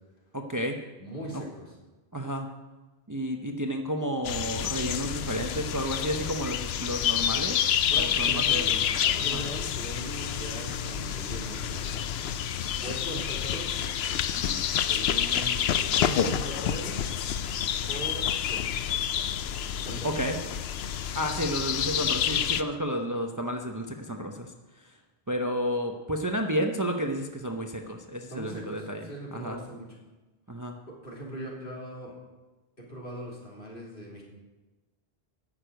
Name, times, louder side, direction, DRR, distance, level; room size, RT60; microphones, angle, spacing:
voice 1, 0.3-0.8 1.3-1.4 2.1-2.5 3.1-8.8 9.2-9.4 14.3-14.6 20.0-20.4 21.1-25.0 25.3-29.6 30.5-30.8, equal, 20° right, 3 dB, 0.7 m, -32 dB
voice 2, 1.0-1.7 7.9-8.7 9.0-11.8 12.8-13.8 14.8-17.0 17.9-18.9 19.8-20.1 28.3-29.9 30.9-32.1 32.8-34.2, right 1 dB, 60° left, -3 dB, 3.1 m, -40 dB
sound 1, 4.2-22.6, left 9 dB, 80° left, 0.8 m, -28 dB
sound 2, 10.1-14.3, right 4 dB, 15° left, 1.5 m, -47 dB
9.9 x 6.7 x 9.1 m, 1.1 s
omnidirectional pair, 1.0 m